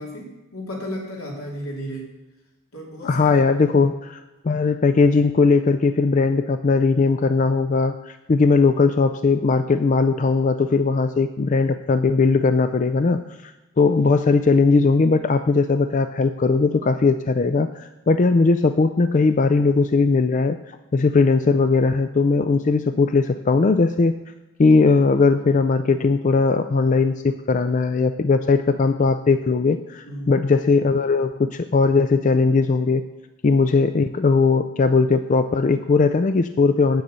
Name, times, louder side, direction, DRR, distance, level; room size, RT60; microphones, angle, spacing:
voice 1, 0.0-2.1 2.7-3.7 30.0-30.4, equal, 85° left, -2 dB, 3.0 m, -34 dB
voice 2, 3.0-24.1 24.6-33.0 33.4-37.0, left 4 dB, 35° left, 10 dB, 0.4 m, -19 dB
8.6 x 7.9 x 6.8 m, 1.1 s
head